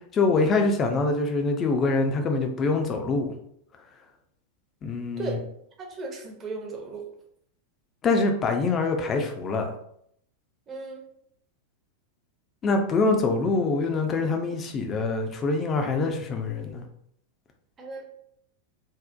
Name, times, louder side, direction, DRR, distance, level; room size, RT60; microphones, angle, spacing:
voice 1, 0.1-3.3 4.8-5.4 8.0-9.7 12.6-16.8, left 3 dB, 25° left, 4 dB, 0.4 m, -24 dB
voice 2, 5.8-7.1 10.7-11.0 17.8-18.0, right 4 dB, 25° right, 1 dB, 0.5 m, -35 dB
2.6 x 2.0 x 2.3 m, 0.71 s
figure-of-eight pair, 90°, 0 cm